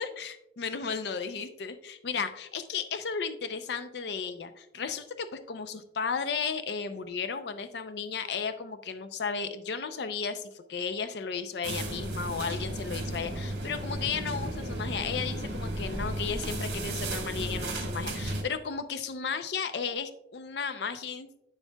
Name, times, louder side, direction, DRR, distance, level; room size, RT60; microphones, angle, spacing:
voice 1, 0.0-21.4, left 6 dB, 60° left, 10 dB, 0.4 m, -34 dB
sound 1, 11.6-18.4, right 1 dB, 60° right, 1.5 m, -34 dB
9.3 x 7.1 x 2.2 m, 0.85 s
head